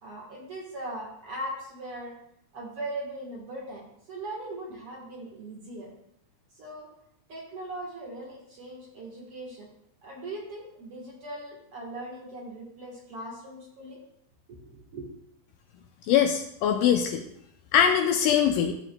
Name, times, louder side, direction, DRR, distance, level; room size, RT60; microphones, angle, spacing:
voice 1, 0.0-2.2 2.5-5.9 6.5-6.9 7.3-9.7 10.0-14.0 14.5-15.1, right 1 dB, 55° right, -3 dB, 1.7 m, -39 dB
voice 2, 16.1-17.2 17.7-18.7, left 8 dB, 90° left, 4 dB, 1.9 m, -22 dB
13.5 x 7.4 x 2.2 m, 0.74 s
omnidirectional pair, 4.4 m